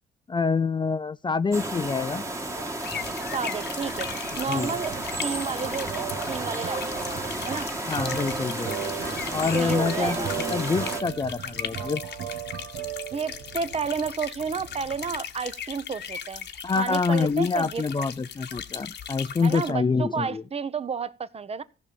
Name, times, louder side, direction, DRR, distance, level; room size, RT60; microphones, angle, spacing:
voice 1, 0.3-2.2 4.5-4.7 7.8-8.9 9.3-12.0 16.6-20.4, left 4 dB, 25° left, 0.5 m, -26 dB
sound 1, 1.5-11.0, right 2 dB, 15° right, 1.6 m, -33 dB
sound 2, 2.8-19.7, left 8 dB, 60° left, 1.2 m, -38 dB
voice 2, 3.3-5.0 5.2-7.7 9.5-10.3 11.8-11.9 13.1-16.5 16.7-17.8 19.4-21.6, right 5 dB, 30° right, 0.9 m, -31 dB
sound 3, 3.9-15.5, right 8 dB, 80° right, 1.6 m, -37 dB
15.0 x 5.7 x 7.0 m
cardioid pair, 90°, 20 cm